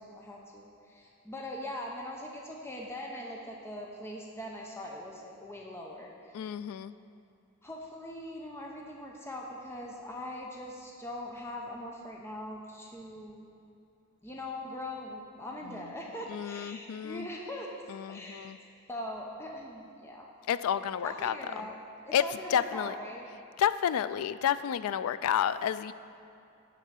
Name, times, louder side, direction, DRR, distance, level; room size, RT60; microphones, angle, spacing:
voice 1, 0.0-6.5 7.6-13.5 14.2-18.5 18.9-20.3 21.0-21.8 22.1-23.3, left 1 dB, 10° left, -1 dB, 0.6 m, -41 dB
voice 2, 6.3-6.9 16.3-17.3 17.9-18.6 20.5-21.3 22.1-22.2 22.5-22.9 23.6-25.9, left 9 dB, 80° left, 16 dB, 0.3 m, -30 dB
11.0 x 3.7 x 7.4 m, 2.7 s
head